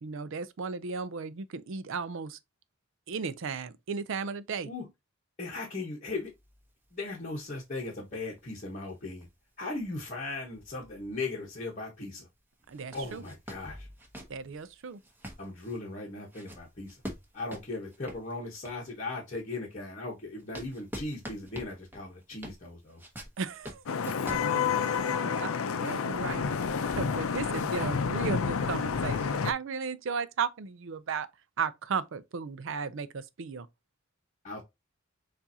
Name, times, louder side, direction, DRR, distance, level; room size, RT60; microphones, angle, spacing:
voice 1, 0.0-2.4 3.1-4.7 12.7-13.2 14.3-15.0 23.4-24.1 25.2-26.4 26.8-31.3 31.6-33.7, right 5 dB, 65° right, 0.5 m, -35 dB
voice 2, 5.4-6.3 6.9-9.3 9.6-12.3 12.9-13.9 15.4-17.0 17.3-23.0 34.4-34.6, left 3 dB, 35° left, 1.1 m, -38 dB
sound 1, 6.2-11.5 11.9-12.0 12.6-19.0 19.5-25.3, equal, 10° right, 1.1 m, -47 dB
Vehicle horn car horn honking / Traffic noise roadway noise, 23.9-29.5, left 6 dB, 80° left, 0.5 m, -29 dB
7.0 x 2.6 x 2.7 m
head